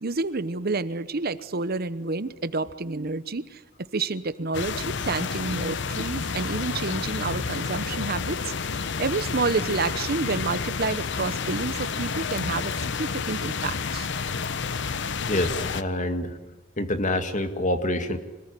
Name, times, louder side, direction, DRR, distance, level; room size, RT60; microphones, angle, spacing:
voice 1, 0.0-3.6 3.9-14.1, right 3 dB, 50° right, 14 dB, 0.9 m, -29 dB
sound 1, 4.5-15.8, left 5 dB, 65° left, 0.9 m, -30 dB
voice 2, 15.3-16.4 16.8-18.2, left 1 dB, 40° left, 8 dB, 2.1 m, -26 dB
25.5 x 19.0 x 9.9 m, 1.2 s
head